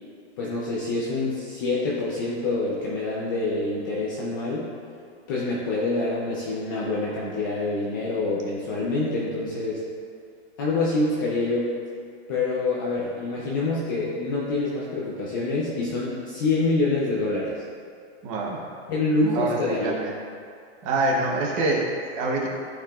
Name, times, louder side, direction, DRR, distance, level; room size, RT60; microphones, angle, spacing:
voice 1, 0.4-4.7 5.3-9.8 10.6-11.7 12.3-17.6 18.9-20.0, left 2 dB, 20° left, -6 dB, 0.4 m, -26 dB
voice 2, 18.2-18.6 19.2-19.6 19.8-20.1 20.8-22.5, right 2 dB, 20° right, -2 dB, 0.7 m, -25 dB
11.5 x 4.8 x 2.3 m, 2.2 s
supercardioid pair, 165°, 34 cm